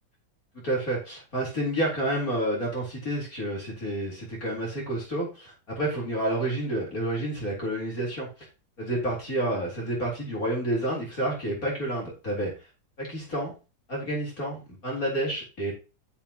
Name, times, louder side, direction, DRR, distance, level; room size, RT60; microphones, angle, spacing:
voice 1, 0.5-8.5 8.8-12.5 13.0-13.5 13.9-15.7, right 1 dB, 50° left, -3 dB, 4.4 m, -29 dB
13.0 x 7.5 x 3.0 m, 0.30 s
omnidirectional pair, 1.9 m